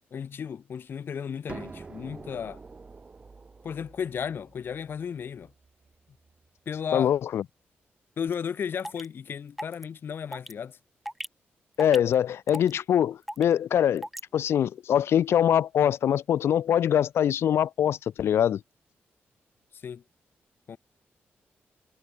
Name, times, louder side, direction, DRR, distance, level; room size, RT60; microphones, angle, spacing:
voice 1, 0.1-2.6 3.6-5.5 6.7-7.1 8.2-10.8 19.7-20.0 20.7-20.8, left 7 dB, 55° left, 1.1 m, -34 dB
sound 1, 1.5-7.1, right 4 dB, 30° right, 0.7 m, -47 dB
voice 2, 6.9-7.4 11.8-14.1 14.3-18.6, left 10 dB, 75° left, 0.3 m, -23 dB
sound 2, 8.3-8.4 8.8-9.1 9.6-9.8 10.3-10.5 11.1-11.3 11.8-12.1 12.5-12.7 13.3-13.5 14.0-14.2, equal, ahead, 0.4 m, -36 dB
wide cardioid pair, 130°, 4 cm